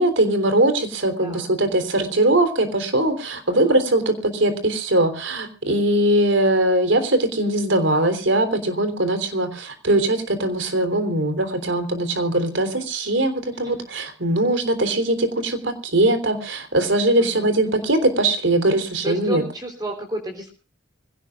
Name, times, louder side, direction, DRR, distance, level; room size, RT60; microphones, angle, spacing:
voice 1, 0.0-19.4, right 1 dB, 85° right, 9 dB, 3.6 m, -21 dB
voice 2, 1.2-1.5 3.5-3.8 12.7-12.9 13.6-13.8 17.2-17.9 19.0-20.5, right 1 dB, 20° right, 2 dB, 3.4 m, -33 dB
25.0 x 17.0 x 2.4 m, 0.35 s
head